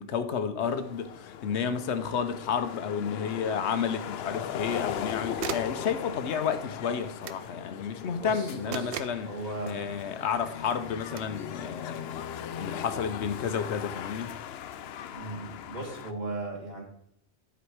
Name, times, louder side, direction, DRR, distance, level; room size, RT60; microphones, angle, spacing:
voice 1, 0.0-9.3 9.6-12.0 12.6-14.3, left 7 dB, 90° left, 1.1 m, -31 dB
sound 1, 0.6-16.1, left 9 dB, 70° left, 0.8 m, -39 dB
sound 2, 2.2-2.3 4.6-5.0 5.4-5.8 7.2-7.5 8.7-9.3 11.1-11.4, right 9 dB, 80° right, 0.9 m, -38 dB
voice 2, 8.2-8.9 9.2-9.8 15.1-16.8, right 2 dB, 40° right, 2.6 m, -37 dB
11.5 x 5.1 x 4.7 m
omnidirectional pair, 1.1 m